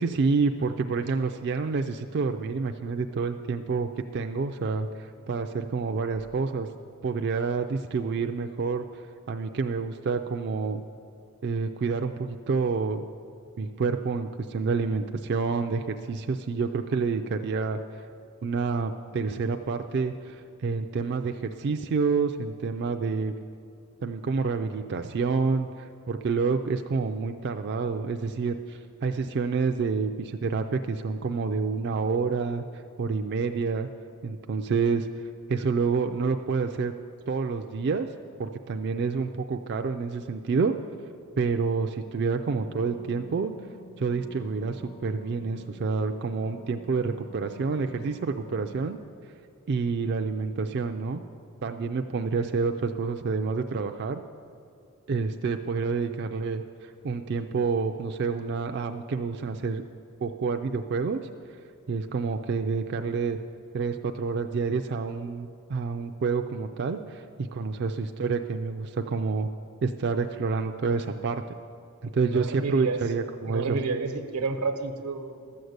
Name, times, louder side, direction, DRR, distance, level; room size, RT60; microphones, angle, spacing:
voice 1, 0.0-6.7 7.0-8.9 9.3-10.8 11.4-13.0 13.6-18.0 18.4-23.3 24.0-32.6 33.0-33.9 34.2-35.1 35.5-36.9 37.3-38.1 38.4-40.7 41.4-43.5 44.0-49.0 49.7-51.2 51.6-54.2 55.1-59.8 60.2-61.2 61.9-63.4 63.7-69.5 69.8-71.4 72.0-73.8, right 4 dB, 50° right, 5 dB, 0.4 m, -28 dB
sound 1, 42.7-49.0, left 1 dB, 25° left, 0.4 m, -49 dB
voice 2, 72.2-73.0 73.5-75.6, right 3 dB, 90° right, 7 dB, 1.0 m, -30 dB
12.5 x 6.5 x 8.0 m, 2.4 s
head